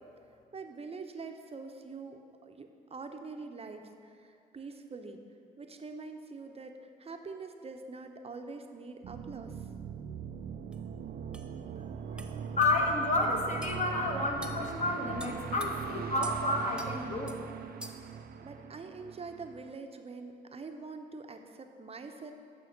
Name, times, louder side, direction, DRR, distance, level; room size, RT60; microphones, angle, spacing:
voice 1, 0.5-5.2 5.6-9.7 18.0-18.1 18.4-22.3, right 4 dB, 30° right, 5 dB, 0.8 m, -44 dB
sound 1, 9.0-19.8, right 7 dB, 50° right, 0.5 m, -41 dB
sound 2, 10.7-10.8 11.3-11.5 12.2-12.3 12.6-12.7 13.6-13.8 14.4-14.6 15.2-15.7 16.2-16.4 16.8-16.9 17.3-17.4 17.8-18.1, right 1 dB, 5° right, 0.7 m, -44 dB
voice 2, 12.6-17.4, left 2 dB, 35° left, 0 dB, 1.5 m, -30 dB
6.9 x 5.8 x 6.6 m, 2.4 s
hypercardioid pair, 55°, 20 cm